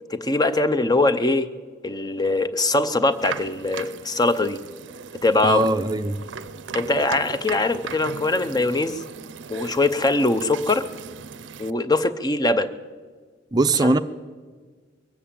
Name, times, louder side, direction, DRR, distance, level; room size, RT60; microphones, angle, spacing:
voice 1, 0.1-1.5 1.8-4.6 5.2-5.7 6.7-9.0 9.5-10.8 11.6-12.7 13.8-13.9, left 2 dB, 20° left, 0.6 m, -22 dB
sound 1, 3.1-11.7, right 6 dB, 70° right, 0.5 m, -38 dB
voice 2, 5.4-6.2 13.5-14.0, right 2 dB, 20° right, 0.5 m, -20 dB
22.5 x 7.5 x 8.5 m
head